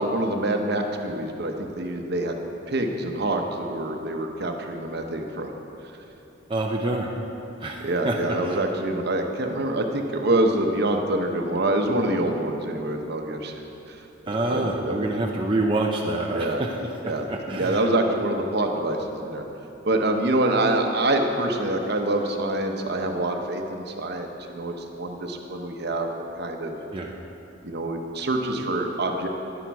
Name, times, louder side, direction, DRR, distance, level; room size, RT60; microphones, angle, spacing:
voice 1, 0.0-2.4 2.7-5.5 7.8-13.6 13.9-14.0 14.2-15.1 16.3-16.6 17.0-19.4 19.8-26.1 26.4-26.8 27.6-29.3, right 1 dB, 55° right, 4 dB, 0.9 m, -26 dB
voice 2, 6.5-7.1 7.6-8.2 8.5-8.6 14.3-16.7 17.3-17.8 26.9-27.1, right 2 dB, 25° right, 0 dB, 0.6 m, -26 dB
11.5 x 10.0 x 4.7 m, 2.9 s
head